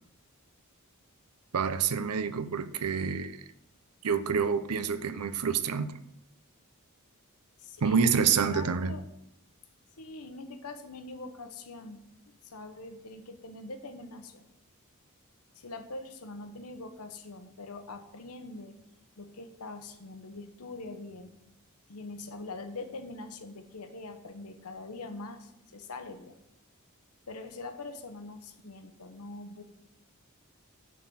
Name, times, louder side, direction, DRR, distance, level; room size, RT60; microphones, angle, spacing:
voice 1, 1.5-3.4 4.0-6.0 7.8-9.0, right 6 dB, 90° right, 0.6 m, -27 dB
voice 2, 7.6-9.1 10.0-14.4 15.6-18.8 19.2-21.3 21.9-26.3 27.3-29.6, left 3 dB, 85° left, 1.0 m, -43 dB
9.6 x 4.3 x 7.0 m
head